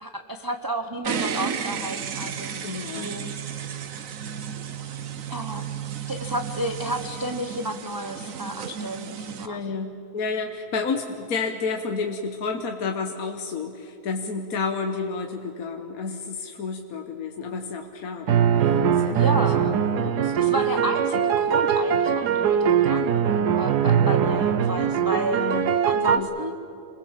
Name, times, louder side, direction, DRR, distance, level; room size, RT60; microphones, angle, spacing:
voice 1, 0.0-3.3 5.3-5.6 6.1-9.8 19.1-19.7 20.3-25.4 25.9-26.6, right 1 dB, 15° right, 4 dB, 0.8 m, -31 dB
sound 1, 1.0-9.5, right 7 dB, 60° right, 1.4 m, -33 dB
voice 2, 2.6-3.1 9.4-20.9 25.3-25.7 26.0-26.3, left 4 dB, 65° left, 4 dB, 1.6 m, -31 dB
sound 2, 18.3-26.2, right 8 dB, 85° right, 1.5 m, -21 dB
27.5 x 21.0 x 7.4 m, 2.6 s
omnidirectional pair, 1.7 m